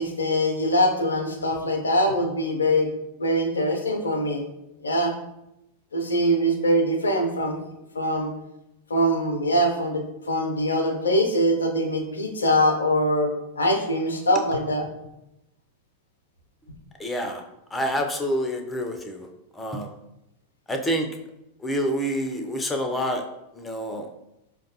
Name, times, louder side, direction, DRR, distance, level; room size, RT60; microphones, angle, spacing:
voice 1, 0.0-2.9 3.2-4.4 4.8-5.2 5.9-7.6 7.9-8.3 8.9-14.9, equal, 75° left, 4 dB, 0.5 m, -23 dB
voice 2, 17.0-17.4 17.7-19.3 19.6-19.9 20.7-21.1 21.6-23.2 23.5-24.1, equal, 10° left, 4 dB, 0.4 m, -27 dB
4.9 x 2.3 x 2.7 m, 0.88 s
figure-of-eight pair, 90°, 0 cm